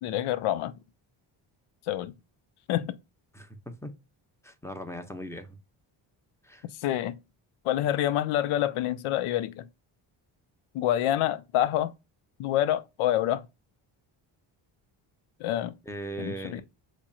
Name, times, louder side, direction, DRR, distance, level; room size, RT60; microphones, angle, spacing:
voice 1, 0.0-0.7 1.9-2.1 2.7-3.0 6.8-7.2 7.6-9.7 10.7-11.9 12.4-13.4 15.4-15.7 16.2-16.6, left 12 dB, 80° left, 0.5 m, -27 dB
voice 2, 3.3-3.9 4.4-5.6 6.4-6.6 15.9-16.6, right 1 dB, 5° left, 0.6 m, -39 dB
4.2 x 3.0 x 2.3 m
cardioid pair, 70°, 49 cm